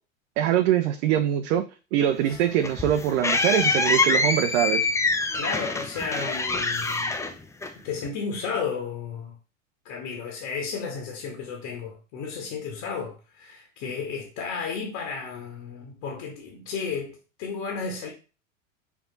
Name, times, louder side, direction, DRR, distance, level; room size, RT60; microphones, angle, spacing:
voice 1, 0.4-4.9, right 11 dB, 55° right, 0.8 m, -23 dB
sound 1, 2.3-8.1, left 3 dB, 5° left, 0.6 m, -25 dB
voice 2, 5.3-7.1 7.8-9.4 9.8-18.1, left 5 dB, 50° left, 2.1 m, -33 dB
5.4 x 4.9 x 4.0 m
hypercardioid pair, 90°, 41 cm